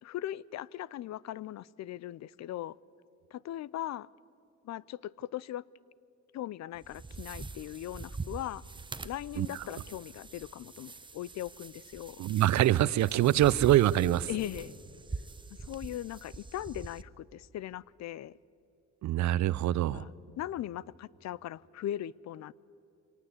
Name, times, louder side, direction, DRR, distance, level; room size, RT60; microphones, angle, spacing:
voice 1, 0.0-2.8 3.3-4.1 4.6-5.6 6.3-8.6 9.0-12.2 14.3-14.8 15.6-18.4 19.9-22.5, left 13 dB, 65° left, 0.5 m, -39 dB
sound 1, 6.8-17.0, right 3 dB, 15° right, 0.7 m, -44 dB
voice 2, 12.2-14.3 19.0-20.0, right 13 dB, 65° right, 0.6 m, -24 dB
24.5 x 18.5 x 8.4 m
cardioid pair, 90°, 30 cm